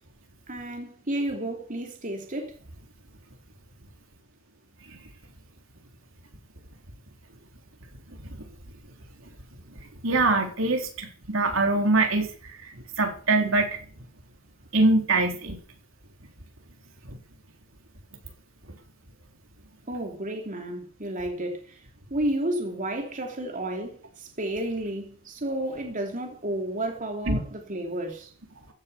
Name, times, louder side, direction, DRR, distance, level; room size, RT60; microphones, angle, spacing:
voice 1, 0.5-2.6 19.9-21.8 22.1-28.3, right 1 dB, 40° right, 3.1 m, -31 dB
voice 2, 10.0-12.3 13.0-13.8 14.7-15.6 27.3-27.4, right 2 dB, 70° right, 3.7 m, -23 dB
15.5 x 9.7 x 7.0 m
head